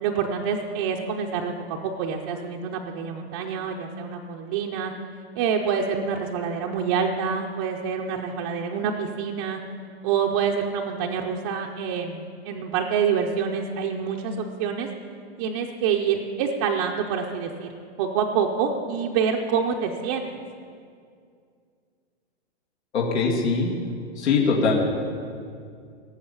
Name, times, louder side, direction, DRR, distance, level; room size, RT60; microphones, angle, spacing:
voice 1, 0.0-4.9 5.3-9.6 10.0-14.9 15.4-17.7 18.0-20.3, right 6 dB, 20° right, -1 dB, 0.5 m, -26 dB
voice 2, 22.9-23.7 24.2-24.7, left 4 dB, 85° left, -3 dB, 2.6 m, -22 dB
17.5 x 7.2 x 7.1 m, 2.3 s
hypercardioid pair, 160°, 32 cm